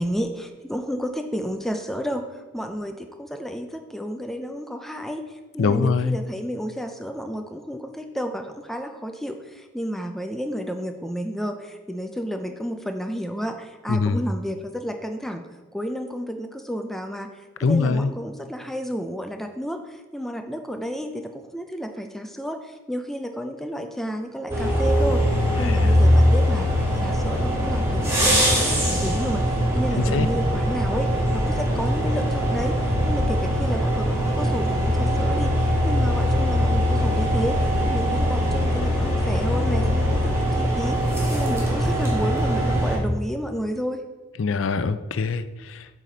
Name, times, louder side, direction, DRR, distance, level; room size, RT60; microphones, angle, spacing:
voice 1, 0.0-15.5 15.7-17.3 17.6-25.2 25.6-44.0, equal, ahead, 5 dB, 0.4 m, -31 dB
voice 2, 5.6-6.2 13.9-14.2 17.6-18.1 25.6-25.9 29.9-30.3 44.4-45.9, left 4 dB, 80° left, 12 dB, 0.4 m, -23 dB
sound 1, 24.5-43.0, equal, 15° right, 2.0 m, -21 dB
8.3 x 4.9 x 3.9 m, 1.2 s
head